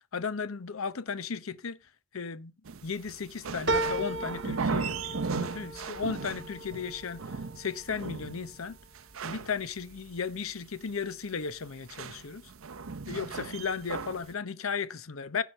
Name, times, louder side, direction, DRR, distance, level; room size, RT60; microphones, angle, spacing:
voice 1, 0.1-1.8 2.1-2.5 2.8-8.8 9.2-12.5 13.1-15.4, left 5 dB, 85° left, 0.8 m, -35 dB
sound 1, 2.6-14.3, right 4 dB, 85° right, 0.7 m, -37 dB
sound 2, 3.7-8.4 8.9-9.6 10.0-10.1, right 2 dB, 60° right, 1.6 m, -36 dB
10.5 x 6.0 x 6.5 m
head